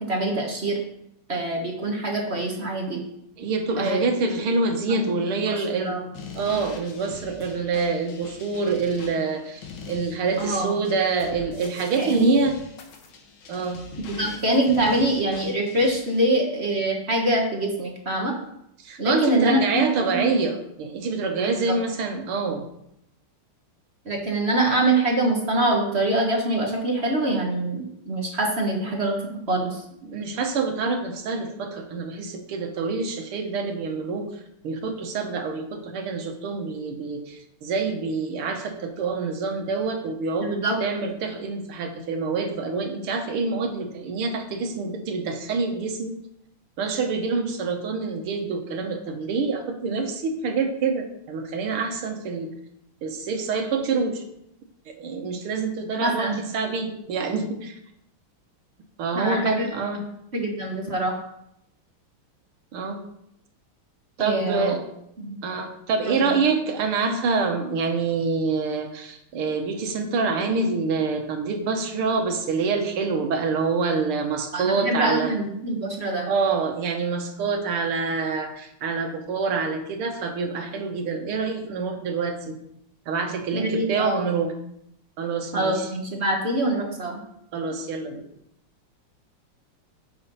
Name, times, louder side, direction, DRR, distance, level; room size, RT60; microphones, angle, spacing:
voice 1, 0.1-0.8 1.3-3.0 3.8-4.0 4.9-5.0 5.5-6.0 10.4-10.7 12.0-12.4 14.1-18.3 19.0-20.3 21.4-21.7 24.0-29.2 29.5-29.8 40.4-40.8 56.0-56.4 59.1-59.7 60.3-61.2 64.2-64.7 65.2-65.4 66.0-66.4 74.5-76.3 83.5-84.3 85.5-87.2, right 1 dB, 35° right, 0 dB, 1.3 m, -24 dB
voice 2, 3.4-6.0 6.4-12.6 13.5-13.8 18.8-22.7 30.0-46.2 46.8-52.5 53.0-54.2 54.9-57.8 59.0-60.0 62.7-63.0 64.2-64.8 65.4-75.4 76.3-82.6 83.1-84.5 85.2-85.9 87.5-88.3, right 4 dB, 75° right, 4 dB, 2.0 m, -26 dB
sound 1, 6.1-16.2, left 4 dB, 70° left, 1.9 m, -42 dB
9.5 x 6.4 x 4.1 m, 0.78 s
omnidirectional pair, 2.4 m